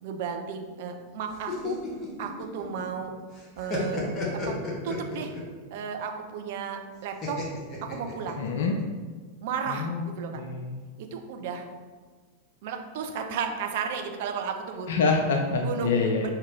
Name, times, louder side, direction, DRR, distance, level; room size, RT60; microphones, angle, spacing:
voice 1, 0.0-1.8 2.2-3.1 3.6-4.0 4.5-4.6 4.8-5.4 5.7-7.4 7.9-8.4 9.4-10.4 11.0-11.7 12.6-14.9 15.6-16.3, right 6 dB, 50° right, 4 dB, 0.5 m, -33 dB
sound 1, 1.3-3.0 3.3-5.6 7.2-8.7, left 3 dB, 25° left, 1.0 m, -33 dB
voice 2, 8.4-8.8 9.7-10.7 14.9-16.3, left 4 dB, 60° left, 2 dB, 0.4 m, -26 dB
4.4 x 2.9 x 3.7 m, 1.4 s
figure-of-eight pair, 90°, 0 cm